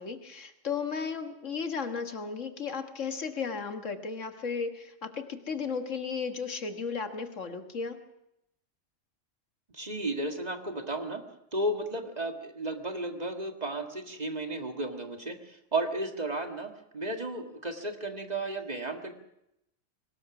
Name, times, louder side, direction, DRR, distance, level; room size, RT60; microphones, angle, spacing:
voice 1, 0.0-8.0, left 5 dB, 75° left, 7 dB, 1.9 m, -35 dB
voice 2, 9.7-11.2 11.5-19.1, right 2 dB, 30° right, 5 dB, 1.9 m, -33 dB
23.0 x 19.0 x 6.0 m, 0.82 s
omnidirectional pair, 1.3 m